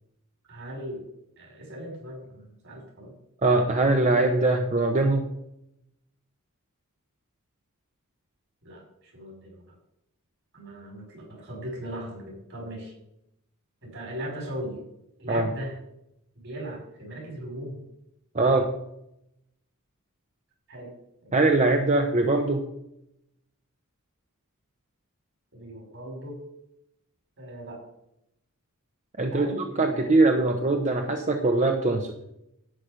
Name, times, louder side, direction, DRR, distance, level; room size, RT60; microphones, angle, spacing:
voice 1, 0.5-1.0 1.4-3.1 8.6-9.7 10.5-12.9 13.8-14.8 15.2-15.8 16.4-17.8 20.7-20.9 21.2-21.3 25.5-26.4 27.4-27.8 29.3-30.1, right 1 dB, 60° right, 0 dB, 5.2 m, -38 dB
voice 2, 3.4-5.2 15.3-15.5 18.3-18.7 21.3-22.6 29.2-32.1, right 2 dB, 35° right, 4 dB, 0.9 m, -22 dB
11.0 x 9.1 x 5.1 m, 0.81 s
head